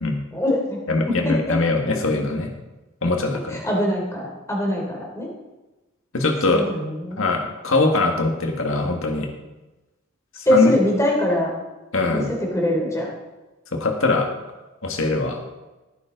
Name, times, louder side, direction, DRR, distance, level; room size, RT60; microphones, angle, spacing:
voice 1, 0.3-0.8 1.1-1.9 3.5-5.3 6.5-7.2 10.4-11.5 12.0-13.1, left 1 dB, 15° left, -1 dB, 3.2 m, -23 dB
voice 2, 0.9-2.5 3.0-3.6 6.1-6.7 7.2-9.3 10.5-10.7 11.9-12.3 13.7-14.3 14.8-15.4, left 2 dB, 65° left, 3 dB, 1.9 m, -22 dB
16.5 x 9.4 x 3.9 m, 1.1 s
head